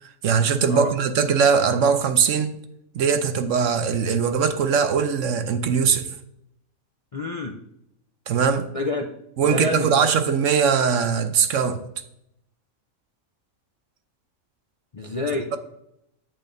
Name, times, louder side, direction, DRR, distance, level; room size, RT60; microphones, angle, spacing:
voice 1, 0.0-2.5 2.9-6.1 8.3-8.7 9.4-11.8, right 6 dB, 65° right, 1.0 m, -21 dB
voice 2, 7.1-7.5 8.7-9.0 9.4-10.1 14.9-15.5, left 3 dB, 45° left, 0.4 m, -27 dB
8.9 x 8.5 x 2.6 m
omnidirectional pair, 1.5 m